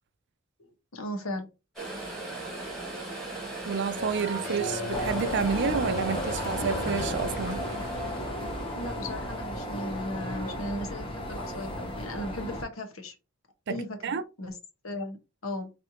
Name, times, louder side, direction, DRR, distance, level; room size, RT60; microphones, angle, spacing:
voice 1, 0.6-1.5 8.7-13.1 13.7-14.6 14.8-15.2 15.4-15.7, left 1 dB, 80° left, 1.1 m, -36 dB
sound 1, 1.8-12.1 12.4-12.5, right 2 dB, ahead, 1.6 m, -39 dB
voice 2, 3.6-7.6 13.7-14.2, right 5 dB, 55° right, 0.5 m, -30 dB
sound 2, 4.0-8.3, equal, 45° left, 1.1 m, -37 dB
sound 3, 4.9-12.7, left 1 dB, 25° left, 0.8 m, -34 dB
4.2 x 3.3 x 2.8 m
head